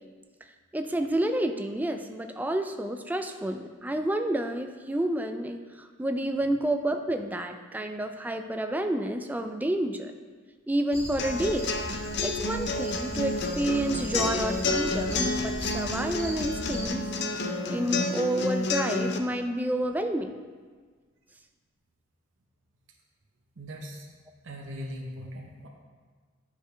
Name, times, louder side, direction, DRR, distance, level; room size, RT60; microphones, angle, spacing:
voice 1, 0.7-10.1 10.7-11.7 12.2-17.0 17.7-20.3, right 1 dB, 10° right, 6 dB, 0.3 m, -29 dB
sound 1, 10.9-16.9, left 1 dB, 30° left, 0.9 m, -38 dB
sound 2, 11.2-19.2, left 2 dB, 60° left, 0.5 m, -30 dB
voice 2, 23.6-24.1 24.4-25.7, equal, 70° right, 0 dB, 0.8 m, -39 dB
9.8 x 4.9 x 3.3 m, 1.5 s
head